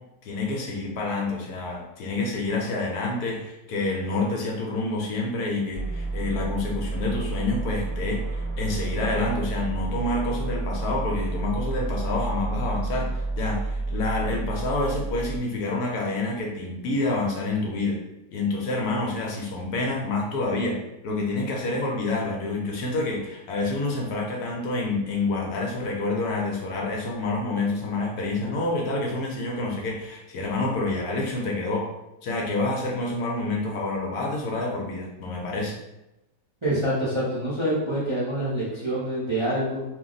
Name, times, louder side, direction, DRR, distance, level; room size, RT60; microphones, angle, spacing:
voice 1, 0.2-18.0 18.3-20.8 21.0-31.9 32.2-35.8, left 2 dB, 70° left, -1 dB, 1.1 m, -28 dB
sound 1, 5.7-15.4, right 2 dB, 20° left, 0.5 m, -30 dB
voice 2, 36.6-39.8, right 1 dB, 35° right, -9 dB, 0.5 m, -26 dB
2.8 x 2.0 x 3.8 m, 0.93 s
omnidirectional pair, 1.7 m